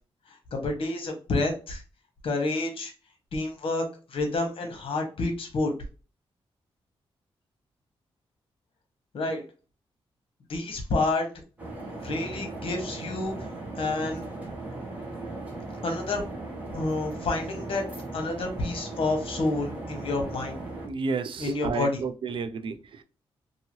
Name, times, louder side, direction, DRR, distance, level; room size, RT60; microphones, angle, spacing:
voice 1, 0.5-1.8 2.2-2.9 3.3-3.8 4.1-5.7 9.1-9.4 10.5-11.3 12.0-13.3 13.8-14.2 15.8-16.2 16.7-17.8 18.1-20.6 21.4-22.0, left 2 dB, 65° left, 3 dB, 1.0 m, -29 dB
sound 1, 11.6-20.9, right 2 dB, 15° right, 1.0 m, -37 dB
voice 2, 20.8-23.0, right 5 dB, 55° right, 10 dB, 0.4 m, -31 dB
2.7 x 2.7 x 2.9 m, 0.34 s
wide cardioid pair, 165°, 10 cm